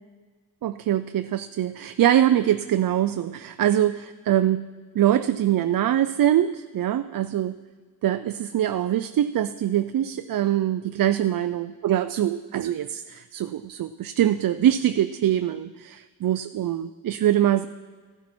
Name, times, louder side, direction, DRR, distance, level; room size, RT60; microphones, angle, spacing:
voice 1, 0.6-4.7 4.9-7.6 8.0-17.7, right 11 dB, 65° right, 11 dB, 0.5 m, -23 dB
14.5 x 10.5 x 4.3 m, 1.4 s
cardioid pair, 50°, 37 cm